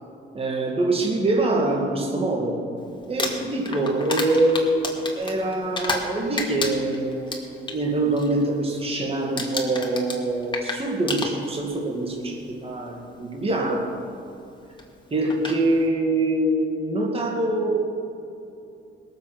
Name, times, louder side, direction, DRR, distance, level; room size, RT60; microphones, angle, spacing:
voice 1, 0.3-2.6 3.1-13.9 15.1-18.0, right 2 dB, 30° right, -1 dB, 2.2 m, -24 dB
Crumpling crinkling, 3.0-6.1 6.4-7.8 8.1-8.5 8.7-9.1 9.4-11.8 12.7-12.8 14.8-14.9 15.3-15.6, left 3 dB, 25° left, 2.3 m, -30 dB
21.0 x 7.8 x 6.0 m, 2.6 s
cardioid pair, 90°, 20 cm